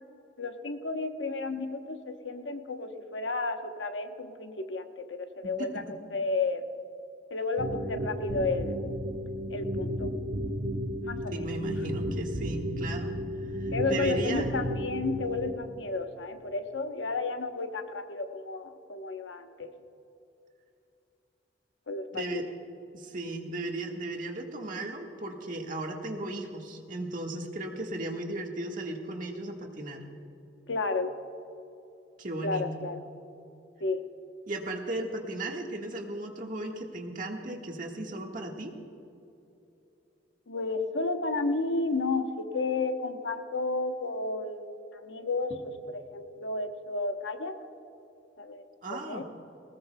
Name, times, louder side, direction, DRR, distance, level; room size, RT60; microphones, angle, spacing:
voice 1, 0.4-5.8 6.1-6.6 7.3-8.8 9.5-10.1 11.0-11.5 13.7-19.7 21.9-22.4 30.7-31.1 32.4-33.0 33.8-34.0 40.5-45.5 45.9-47.6 48.4-49.2, left 3 dB, 85° left, 6 dB, 1.0 m, -32 dB
voice 2, 5.4-6.0 11.3-13.2 13.5-14.5 22.1-22.4 22.9-30.0 32.2-32.7 34.5-38.7 48.8-49.2, right 2 dB, 50° right, 1 dB, 1.6 m, -36 dB
sound 1, 7.6-15.5, equal, 70° right, 1.5 m, -33 dB
20.0 x 19.0 x 2.3 m, 2.9 s
head